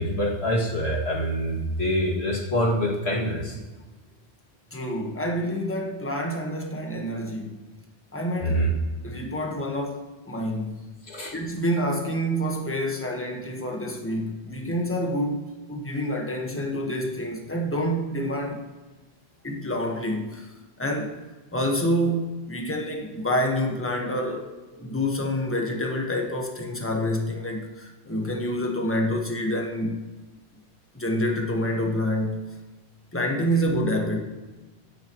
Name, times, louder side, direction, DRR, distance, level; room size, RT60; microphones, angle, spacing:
voice 1, 0.0-3.6 8.4-8.7 11.0-11.3, equal, 70° left, -4 dB, 2.6 m, -25 dB
voice 2, 4.7-7.6 8.1-8.7 9.0-10.9 11.3-18.6 19.4-20.5 20.8-21.2 21.5-30.0 30.9-32.4 33.1-34.2, equal, 10° left, 1 dB, 1.3 m, -27 dB
16.5 x 10.5 x 3.1 m, 1.2 s
omnidirectional pair, 1.1 m